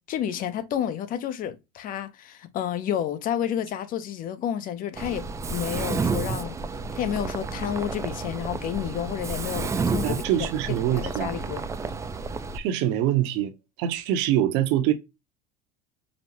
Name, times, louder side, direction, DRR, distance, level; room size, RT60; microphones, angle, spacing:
voice 1, 0.1-6.6 6.9-10.5 10.9-11.7, left 10 dB, 45° left, 0.7 m, -30 dB
Mechanisms, 5.0-12.6, right 4 dB, 15° right, 0.3 m, -31 dB
voice 2, 10.0-11.3 12.5-13.5 13.8-14.9, right 11 dB, 65° right, 0.7 m, -24 dB
5.1 x 2.0 x 2.8 m
supercardioid pair, 100°, 20 cm